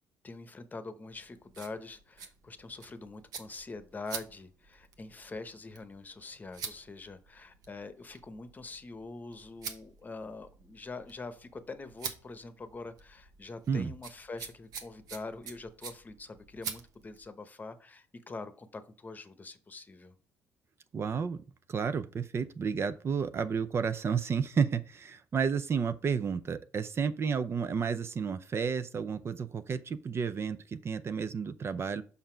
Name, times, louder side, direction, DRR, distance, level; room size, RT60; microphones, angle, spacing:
voice 1, 0.2-20.1, left 3 dB, 25° left, 0.9 m, -44 dB
sound 1, 1.1-17.3, right 6 dB, 70° right, 1.1 m, -47 dB
voice 2, 20.9-21.4 21.7-32.0, right 6 dB, 40° right, 0.5 m, -31 dB
5.8 x 5.5 x 4.4 m
cardioid pair, 90°, 7 cm